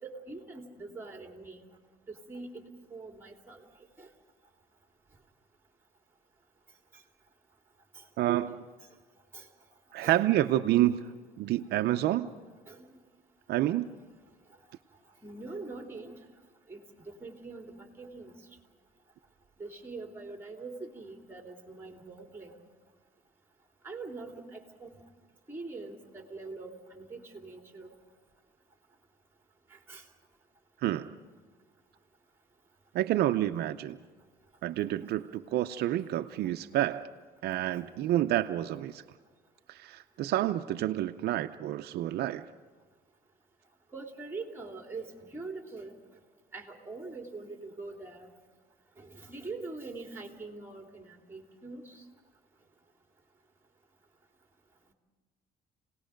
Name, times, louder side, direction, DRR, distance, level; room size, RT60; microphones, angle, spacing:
voice 1, 0.0-1.7 2.3-2.6 2.9-3.6 4.0-4.1 7.9-8.0 9.3-9.5 10.0-10.2 12.7-13.0 15.2-16.1 16.7-18.3 19.6-22.6 23.8-24.9 25.5-27.9 29.7-30.0 43.9-46.0 46.5-48.3 49.0-52.0, right 3 dB, 15° right, 2 dB, 3.2 m, -43 dB
voice 2, 8.2-8.6 9.9-11.1 11.4-12.3 13.5-13.9 30.8-31.1 32.9-34.0 34.6-37.0 37.4-39.0 39.7-42.5, right 13 dB, 70° right, 9 dB, 0.6 m, -28 dB
29.5 x 18.5 x 5.2 m, 1.4 s
cardioid pair, 110°, 17 cm